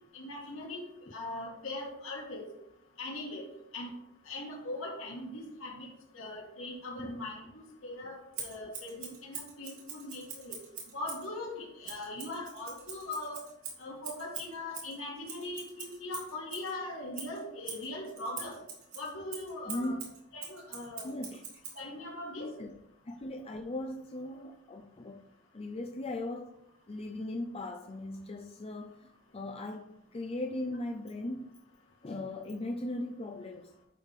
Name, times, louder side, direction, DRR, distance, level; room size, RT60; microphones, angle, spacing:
voice 1, 0.1-0.8 1.1-2.4 3.0-3.5 3.7-3.9 4.3-5.9 6.1-10.6 10.9-13.4 13.8-18.6 19.0-20.0 20.3-21.1 21.7-22.5, left 2 dB, 75° left, -1 dB, 2.4 m, -40 dB
Scissors, 8.3-11.3 11.8-16.7 17.1-21.8, right 6 dB, 90° right, 2.8 m, -44 dB
voice 2, 19.7-20.1 21.0-21.4 22.4-22.8 23.1-25.2 25.5-26.5 26.9-31.5 32.0-33.7, left 1 dB, 30° left, 4 dB, 0.5 m, -38 dB
11.0 x 4.9 x 3.5 m, 0.80 s
head